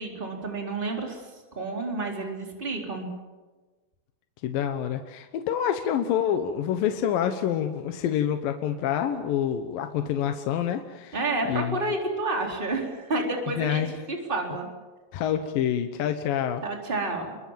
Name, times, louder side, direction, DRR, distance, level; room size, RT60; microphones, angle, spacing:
voice 1, 0.0-3.1 11.1-13.8 14.1-14.7 16.6-17.4, right 2 dB, 15° right, 1 dB, 3.8 m, -30 dB
voice 2, 4.4-11.2 11.5-11.8 13.6-13.9 15.1-16.6, left 9 dB, 70° left, 7 dB, 2.6 m, -27 dB
28.5 x 22.5 x 7.6 m, 1.3 s
omnidirectional pair, 4.6 m